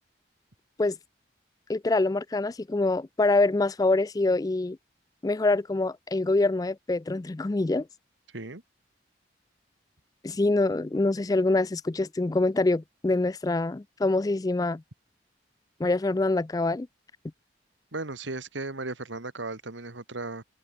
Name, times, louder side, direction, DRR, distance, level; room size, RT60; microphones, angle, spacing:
voice 1, 1.7-4.8 5.2-7.9 10.2-14.8 15.8-16.9, left 2 dB, 20° left, 0.4 m, -25 dB
voice 2, 17.9-20.4, right 2 dB, 85° right, 2.1 m, -36 dB
open air
head